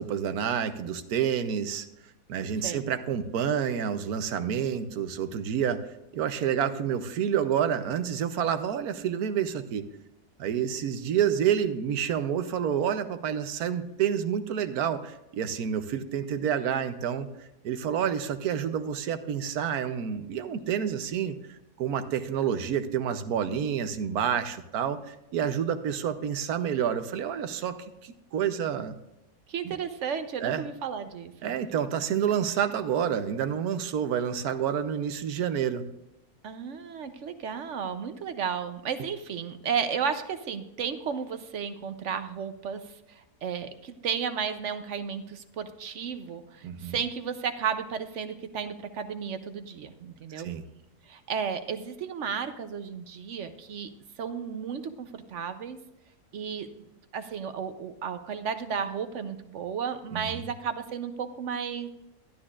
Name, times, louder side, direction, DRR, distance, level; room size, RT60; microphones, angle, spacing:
voice 1, 0.0-1.9 2.3-5.8 6.1-9.8 10.4-17.3 17.6-29.0 29.6-29.7 30.4-30.6 31.4-35.8 46.6-47.0 50.3-50.6 60.1-60.5, right 8 dB, 75° right, 10 dB, 1.2 m, -29 dB
voice 2, 29.5-31.5 36.4-50.5 51.1-53.9 54.2-55.8 56.3-56.7 57.1-61.9, right 7 dB, 60° right, 10 dB, 0.9 m, -33 dB
12.5 x 11.5 x 2.4 m, 0.89 s
omnidirectional pair, 1.6 m